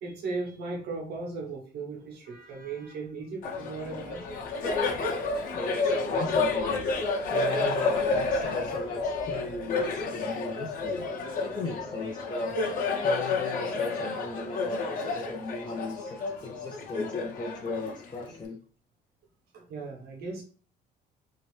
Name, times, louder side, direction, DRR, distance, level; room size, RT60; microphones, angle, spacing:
voice 1, 0.0-4.4 16.9-17.0 19.5-20.4, right 3 dB, 70° right, 1 dB, 1.1 m, -37 dB
Laughter, 3.4-18.4, left 3 dB, 55° left, 0.8 m, -30 dB
voice 2, 5.5-6.9 7.3-11.1 11.4-12.6 13.0-18.6, left 3 dB, 25° left, 0 dB, 0.5 m, -37 dB
3.0 x 2.8 x 3.2 m, 0.42 s
cardioid pair, 110°, 17 cm